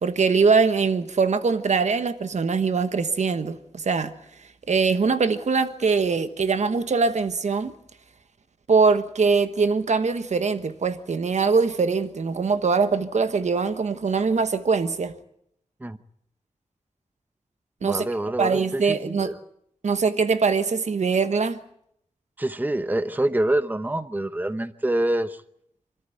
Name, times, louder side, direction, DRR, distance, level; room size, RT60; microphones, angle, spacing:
voice 1, 0.0-4.1 4.7-7.7 8.7-15.1 17.8-18.1 18.4-19.3 19.8-21.6, right 4 dB, 65° right, 1.2 m, -22 dB
voice 2, 17.8-19.4 22.4-25.4, right 1 dB, 15° right, 0.9 m, -26 dB
25.5 x 14.0 x 9.2 m
wide cardioid pair, 80°, 13 cm